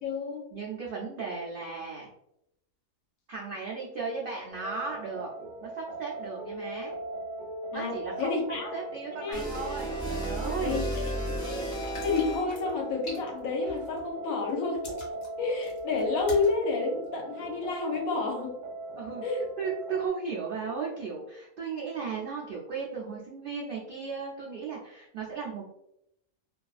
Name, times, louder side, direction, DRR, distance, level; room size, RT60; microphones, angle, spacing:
voice 1, 0.0-0.4 7.7-7.9 8.2-8.7 9.2-9.6 10.6-11.0 11.4-11.7 12.0-14.9 15.4-18.5 19.2-19.4, left 4 dB, 75° left, 2 dB, 1.0 m, -30 dB
voice 2, 0.5-2.1 3.3-5.3 5.6-6.9 7.7-8.4 8.7-10.8 19.0-19.2 19.6-25.6, right 5 dB, 80° right, -4 dB, 0.4 m, -36 dB
sound 1, 4.5-20.1, right 2 dB, 60° right, 1.0 m, -40 dB
sound 2, 9.3-12.7, equal, 5° left, 0.4 m, -33 dB
sound 3, 11.8-14.1 14.5-16.5 17.1-17.2, left 2 dB, 50° left, 1.0 m, -44 dB
2.5 x 2.3 x 2.3 m, 0.81 s
omnidirectional pair, 1.5 m